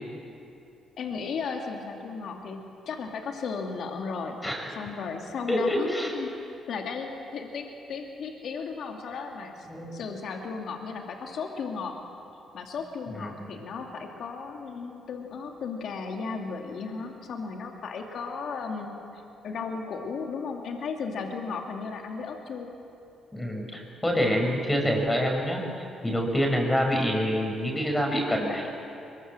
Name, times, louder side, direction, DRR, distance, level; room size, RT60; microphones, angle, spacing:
voice 1, 1.0-4.4 4.7-6.3 6.7-12.0 12.5-22.8, left 5 dB, 65° left, 2 dB, 2.3 m, -35 dB
voice 2, 5.5-6.1 9.7-10.0 13.2-13.5 23.3-25.6 26.0-28.6, equal, 10° left, 1 dB, 5.6 m, -26 dB
22.5 x 22.0 x 7.6 m, 2.7 s
cardioid pair, 90°, 0 cm